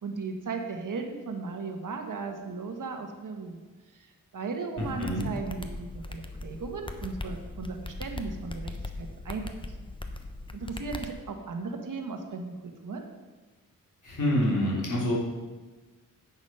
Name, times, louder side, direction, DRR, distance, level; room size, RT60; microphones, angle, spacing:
voice 1, 0.0-3.6 4.3-9.5 10.5-13.0, right 4 dB, 65° right, 4 dB, 1.4 m, -36 dB
voice 2, 4.8-5.3 14.0-15.1, equal, 60° left, -5 dB, 3.6 m, -27 dB
sound 1, 4.8-11.1, left 2 dB, 15° left, 0.9 m, -39 dB
10.0 x 7.2 x 5.6 m, 1.3 s
wide cardioid pair, 90°, 34 cm